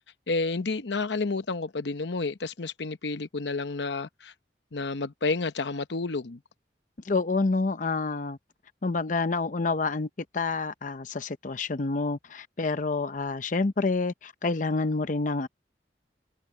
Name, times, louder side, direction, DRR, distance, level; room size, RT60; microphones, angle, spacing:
voice 1, 0.3-4.3 4.7-6.4, left 3 dB, 80° left, 0.9 m, -30 dB
voice 2, 7.0-8.4 8.8-15.5, left 3 dB, 45° left, 0.7 m, -28 dB
head